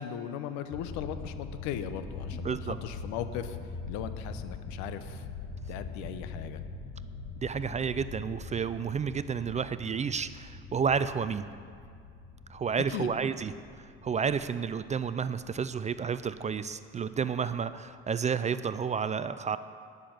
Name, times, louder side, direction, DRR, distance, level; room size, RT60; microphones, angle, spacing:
voice 1, 0.0-2.5 2.8-3.6 3.9-5.2 5.7-6.6 12.9-13.1, left 9 dB, 70° left, 11 dB, 0.8 m, -38 dB
sound 1, 0.7-16.7 16.9-17.0 17.4-17.5 17.7-18.0 18.2-18.5 18.9-19.0, left 4 dB, 50° left, 1.9 m, -43 dB
voice 2, 2.4-2.8 7.4-11.4 12.5-13.5 14.0-19.6, right 6 dB, 25° right, 13 dB, 0.4 m, -31 dB
10.0 x 6.7 x 8.7 m, 2.3 s
hypercardioid pair, 75°, 30 cm